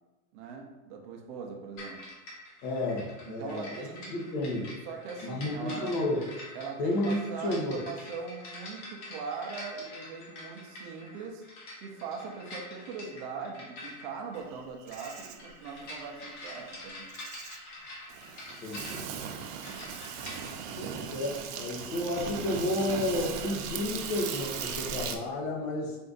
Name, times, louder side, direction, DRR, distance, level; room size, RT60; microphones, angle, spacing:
voice 1, 0.3-2.0 3.3-4.2 4.9-5.9 6.5-11.4 11.8-17.1 20.5-21.3, right 5 dB, 35° right, 1 dB, 0.5 m, -41 dB
sound 1, 1.8-20.5, left 2 dB, 40° left, 1.0 m, -46 dB
voice 2, 2.6-4.6 5.2-6.2 6.8-7.8 18.6-19.1 20.8-26.0, left 1 dB, 65° left, -1 dB, 1.2 m, -32 dB
Insect, 14.5-25.2, right 7 dB, 85° right, 0.6 m, -38 dB
4.3 x 2.5 x 3.8 m, 1.1 s
supercardioid pair, 170°, 45 cm